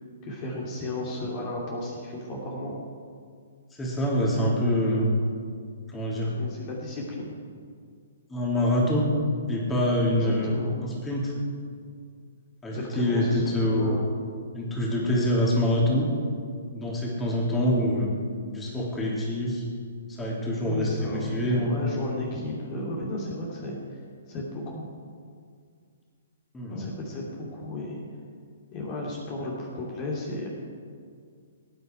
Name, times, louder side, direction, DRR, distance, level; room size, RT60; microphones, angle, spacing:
voice 1, 0.2-2.8 6.4-7.3 10.1-10.9 12.7-14.0 20.6-24.0 24.3-24.9 26.7-28.0 28.7-30.5, left 1 dB, 35° left, -3 dB, 2.8 m, -34 dB
voice 2, 3.8-5.1 5.9-6.3 8.3-9.0 9.5-11.3 12.6-14.0 14.5-16.0 16.7-18.1 18.5-19.6 20.2-21.7 26.5-26.9, left 1 dB, 10° left, -4 dB, 3.1 m, -25 dB
18.0 x 9.7 x 4.6 m, 2.1 s
figure-of-eight pair, 125°, 0 cm